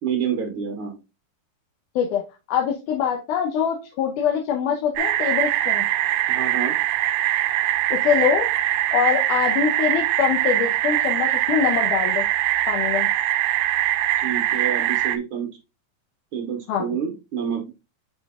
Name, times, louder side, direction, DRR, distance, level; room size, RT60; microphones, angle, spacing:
voice 1, 0.0-1.0 6.3-6.7 14.2-15.5 16.3-17.7, right 7 dB, 70° right, 3 dB, 1.2 m, -28 dB
voice 2, 2.5-5.8 7.9-8.5 8.9-12.2 12.7-13.1 16.7-16.9, left 8 dB, 70° left, 0 dB, 2.3 m, -23 dB
sound 1, 5.0-15.2, right 14 dB, 85° right, 2.4 m, -22 dB
10.5 x 4.3 x 2.2 m, 0.27 s
omnidirectional pair, 4.1 m